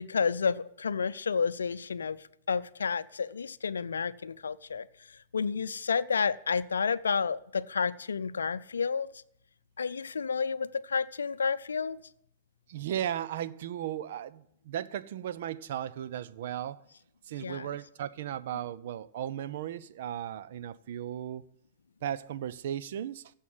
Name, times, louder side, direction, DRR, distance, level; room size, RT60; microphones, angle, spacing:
voice 1, 0.0-2.2 2.5-9.1 9.8-12.0 17.4-17.7, left 5 dB, 70° left, 0.5 m, -30 dB
voice 2, 12.7-16.8 17.3-21.4 22.0-23.3, right 10 dB, 55° right, 0.6 m, -36 dB
15.5 x 5.6 x 9.6 m
figure-of-eight pair, 105°, 0 cm